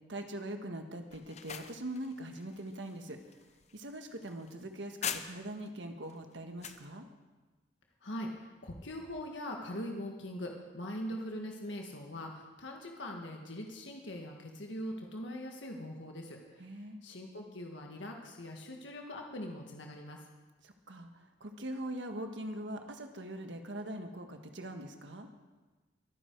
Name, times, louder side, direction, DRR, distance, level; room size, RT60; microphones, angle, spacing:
voice 1, 0.1-3.2 3.7-7.1 16.6-17.0 20.6-25.3, right 1 dB, 80° right, 5 dB, 1.6 m, -42 dB
sound 1, 1.1-5.7 6.1-6.9, left 8 dB, 35° left, 0.7 m, -43 dB
voice 2, 8.0-16.7 17.0-20.2, left 1 dB, 80° left, 1 dB, 1.6 m, -42 dB
23.5 x 9.7 x 4.7 m, 1.2 s
head